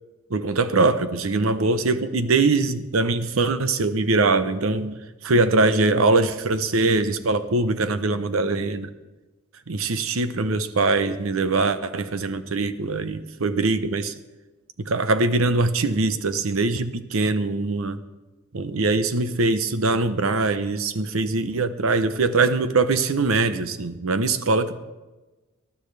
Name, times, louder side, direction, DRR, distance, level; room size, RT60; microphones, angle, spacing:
voice 1, 0.3-8.9 9.7-14.1 14.8-18.0 18.5-24.8, right 3 dB, 80° right, 11 dB, 0.8 m, -22 dB
19.5 x 12.0 x 3.4 m, 1.1 s
head